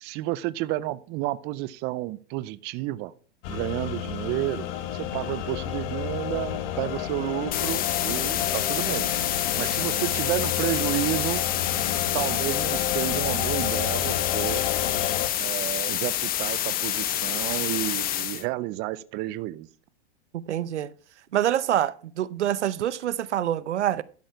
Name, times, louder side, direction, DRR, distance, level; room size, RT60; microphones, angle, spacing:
voice 1, 0.0-3.1 3.5-4.7 4.9-9.1 9.6-11.4 12.1-14.7 15.4-19.7, right 17 dB, 30° right, 0.5 m, -31 dB
sound 1, 3.4-15.3, left 11 dB, 50° left, 1.4 m, -31 dB
sound 2, 7.5-18.4, left 12 dB, 25° left, 0.9 m, -28 dB
voice 2, 20.3-20.9 21.3-24.0, right 11 dB, 85° right, 0.8 m, -26 dB
12.0 x 6.4 x 4.7 m
hypercardioid pair, 120°, 34 cm